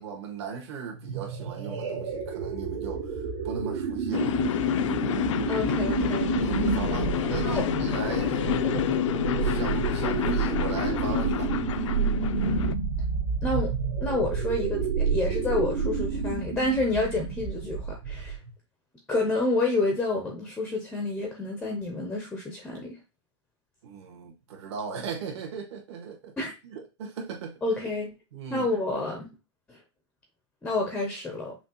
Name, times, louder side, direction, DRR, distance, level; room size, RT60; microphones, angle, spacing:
voice 1, 0.0-3.1 3.4-4.4 6.3-8.4 9.4-11.5 23.8-26.3 26.6-27.6 28.3-28.7, right 5 dB, 65° right, 1.6 m, -37 dB
sound 1, 0.9-18.5, right 5 dB, 85° right, 1.7 m, -30 dB
sound 2, 4.1-12.7, left 11 dB, 85° left, 0.5 m, -28 dB
voice 2, 5.5-6.3 7.4-7.7 13.4-13.7 14.0-18.4 19.1-23.0 26.4-26.5 27.6-28.1 28.5-29.3 29.7-29.8 30.6-31.6, left 2 dB, 5° left, 0.5 m, -29 dB
5.9 x 2.4 x 2.8 m
supercardioid pair, 175°, 15 cm